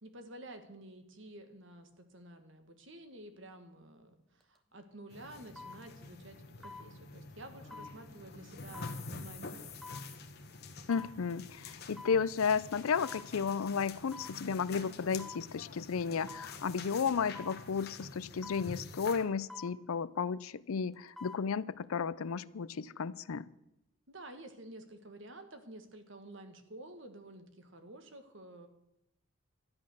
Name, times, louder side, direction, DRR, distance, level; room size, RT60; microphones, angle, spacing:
voice 1, 0.0-9.7 24.1-28.7, right 1 dB, 60° right, 7 dB, 1.5 m, -51 dB
sound 1, 4.4-4.6 5.6-5.8 6.6-6.9 7.7-8.0 8.7-9.0 9.8-10.1 10.9-11.1 12.0-12.2 13.0-13.3 14.1-14.4 15.2-15.4 16.3-16.5 17.3-17.6 18.4-18.7 19.5-19.8 20.9-21.4 21.8-21.9, left 3 dB, ahead, 0.9 m, -47 dB
sound 2, 5.1-19.2, left 3 dB, 50° left, 1.2 m, -48 dB
sound 3, 8.1-8.2 8.6-10.2 10.5-10.6 10.9-11.3 11.7-12.0 12.7-12.8 13.3-13.4 14.2-14.3, left 9 dB, 30° left, 1.6 m, -52 dB
voice 2, 10.9-23.5, left 6 dB, 80° left, 18 dB, 0.5 m, -33 dB
12.5 x 10.5 x 6.4 m, 0.86 s
head